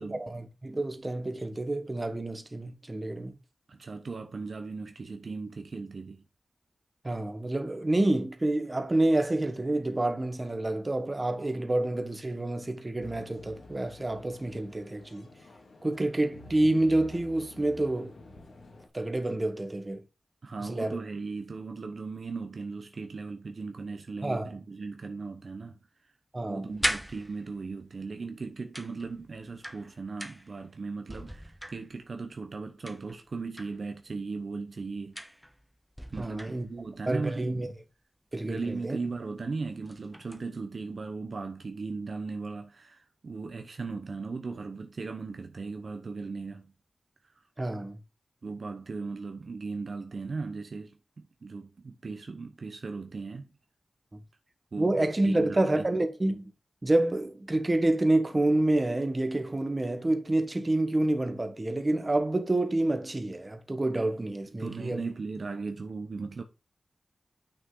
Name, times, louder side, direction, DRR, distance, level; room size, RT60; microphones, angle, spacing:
voice 1, 0.0-3.3 7.0-15.3 15.8-18.1 18.9-20.0 20.6-21.0 24.2-24.5 26.3-26.8 36.2-36.6 37.1-37.7 38.3-39.0 47.6-48.0 54.8-56.5 56.8-65.0, right 2 dB, 25° right, 1.5 m, -28 dB
voice 2, 3.7-6.2 20.4-25.8 26.5-35.2 36.1-37.7 38.4-46.7 48.4-53.5 54.7-55.0 55.2-55.9 64.6-66.4, right 4 dB, 60° right, 0.9 m, -37 dB
sound 1, 13.0-18.9, left 1 dB, 85° left, 2.7 m, -49 dB
sound 2, 26.5-27.8 28.7-30.6 31.0-32.2 32.8-33.8 35.1-35.6 36.0-37.0 38.6-38.7 39.1-39.3 39.7-40.5, equal, ahead, 1.1 m, -38 dB
8.5 x 6.4 x 3.9 m
wide cardioid pair, 90°, 0 cm